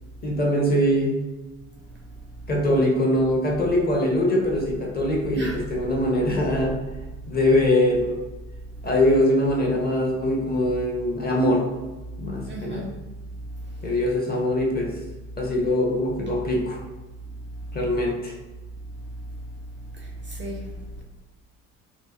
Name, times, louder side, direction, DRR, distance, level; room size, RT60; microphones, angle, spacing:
voice 1, 0.2-1.2 2.5-6.7 7.3-8.2 8.8-11.6 12.2-12.9 13.8-14.9 15.4-16.8 17.7-18.3, left 1 dB, 25° left, -1 dB, 0.6 m, -22 dB
voice 2, 12.4-13.0 13.9-14.0 19.9-20.7, right 1 dB, 30° right, -2 dB, 0.4 m, -34 dB
2.6 x 2.0 x 2.4 m, 1.2 s
figure-of-eight pair, 55°, 42 cm